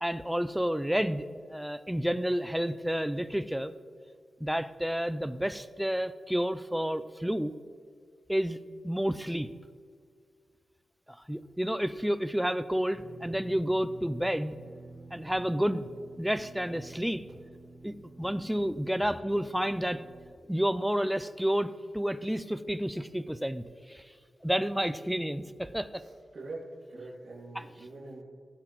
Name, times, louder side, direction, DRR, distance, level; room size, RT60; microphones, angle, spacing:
voice 1, 0.0-3.7 4.4-7.5 8.3-8.6 8.8-9.5 11.1-14.6 15.1-15.9 16.2-17.2 17.8-20.0 20.5-24.0 24.4-26.0, equal, ahead, 12 dB, 0.4 m, -30 dB
sound 1, 12.9-20.3, right 3 dB, 30° right, 0.7 m, -50 dB
voice 2, 25.9-28.2, right 2 dB, 50° right, -7 dB, 2.2 m, -44 dB
16.5 x 7.8 x 3.0 m, 2.1 s
wide cardioid pair, 165°, 0 cm